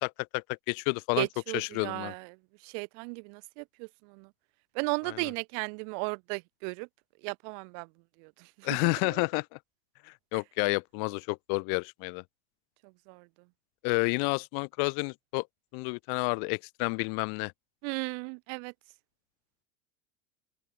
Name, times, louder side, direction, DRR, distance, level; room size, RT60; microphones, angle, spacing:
voice 1, 0.0-1.3 1.5-2.1 5.1-5.2 8.6-9.5 10.3-12.2 13.8-15.5 15.7-17.5, left 39 dB, 55° left, 1.8 m, -30 dB
voice 2, 1.2-2.4 2.6-4.3 4.7-6.9 7.2-7.9 8.2-9.2 10.3-10.4 12.8-13.3 17.8-18.7, right 40 dB or more, 55° right, 0.9 m, -36 dB
open air
hypercardioid pair, 95°, 43 cm